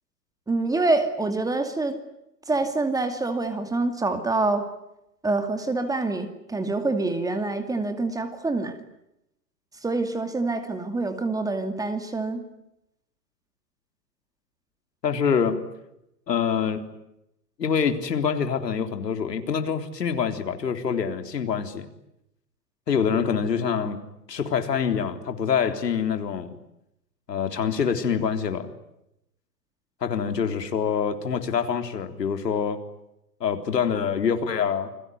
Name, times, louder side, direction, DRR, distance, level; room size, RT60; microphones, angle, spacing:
voice 1, 0.5-2.0 2.5-4.7 5.2-8.8 9.8-12.5, right 3 dB, 5° right, 8 dB, 2.4 m, -26 dB
voice 2, 15.0-15.7 16.3-16.9 17.6-21.9 22.9-24.0 24.3-26.5 27.3-28.7 30.0-32.8 33.4-34.9, left 7 dB, 75° left, 7 dB, 3.8 m, -25 dB
29.0 x 21.5 x 9.4 m, 0.85 s
hypercardioid pair, 125°, 50 cm